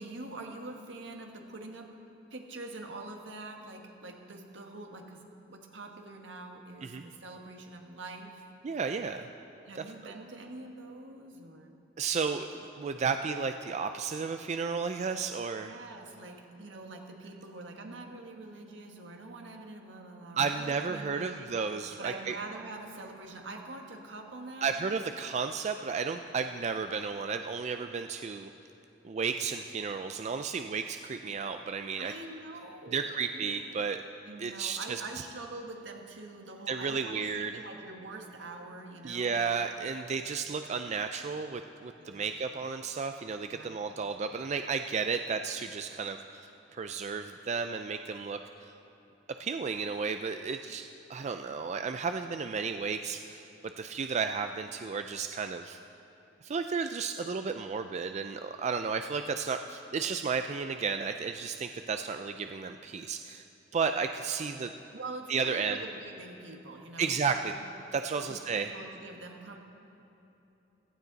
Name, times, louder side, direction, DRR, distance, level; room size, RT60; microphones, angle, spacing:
voice 1, 0.0-2.0 2.3-8.4 9.6-11.7 15.6-24.8 32.0-33.5 34.3-39.4 42.0-42.3 43.5-43.8 64.9-67.6 68.2-69.6, right 2 dB, 80° right, 2 dB, 1.5 m, -45 dB
voice 2, 8.6-9.3 9.7-10.1 12.0-15.8 20.4-22.4 24.6-28.5 29.0-32.1 32.9-34.0 34.4-35.0 36.7-37.6 39.0-48.7 49.4-53.5 53.8-55.8 56.4-63.4 63.7-64.7 65.3-65.8 67.0-67.5 67.9-68.7, right 5 dB, 40° right, 7 dB, 0.4 m, -33 dB
16.0 x 15.0 x 4.0 m, 3.0 s
head